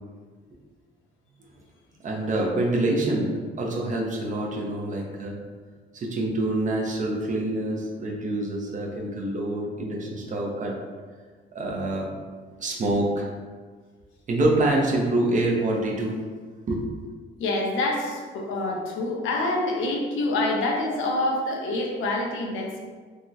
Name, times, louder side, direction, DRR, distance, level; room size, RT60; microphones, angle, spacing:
voice 1, 2.0-5.4 5.9-10.7 11.5-12.1 12.6-13.3 14.3-16.2 16.7-16.8, right 1 dB, 40° right, -1 dB, 0.6 m, -26 dB
voice 2, 17.4-22.8, left 2 dB, 85° left, 0 dB, 0.6 m, -26 dB
3.5 x 2.1 x 2.6 m, 1.5 s
cardioid pair, 90°, 20 cm